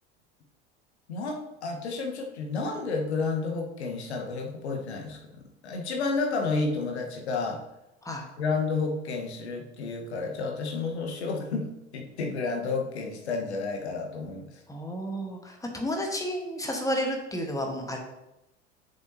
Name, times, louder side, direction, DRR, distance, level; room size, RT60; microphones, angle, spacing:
voice 1, 1.1-7.6 8.4-14.5, left 4 dB, 65° left, 2 dB, 1.3 m, -31 dB
voice 2, 14.7-18.0, equal, 10° left, 2 dB, 1.3 m, -31 dB
7.7 x 6.9 x 2.8 m, 0.90 s
figure-of-eight pair, 75°, 35 cm